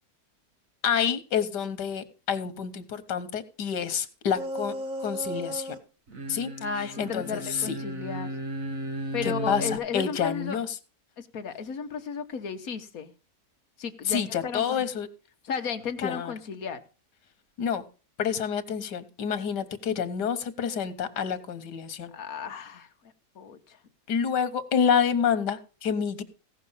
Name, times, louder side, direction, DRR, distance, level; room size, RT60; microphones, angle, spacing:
voice 1, 0.8-4.7 5.0-5.8 6.3-6.5 6.8-7.8 9.2-10.8 14.1-15.1 16.0-16.3 17.6-17.8 18.2-22.1 24.1-26.2, left 7 dB, 90° left, 1.8 m, -28 dB
sound 1, 4.4-5.8 6.1-9.8, right 1 dB, 55° right, 2.0 m, -35 dB
voice 2, 6.6-8.3 9.1-10.6 11.2-13.1 13.8-14.6 15.4-16.8 22.1-22.9 23.3-23.8, left 6 dB, 60° left, 1.5 m, -34 dB
16.5 x 6.0 x 5.6 m
omnidirectional pair, 1.8 m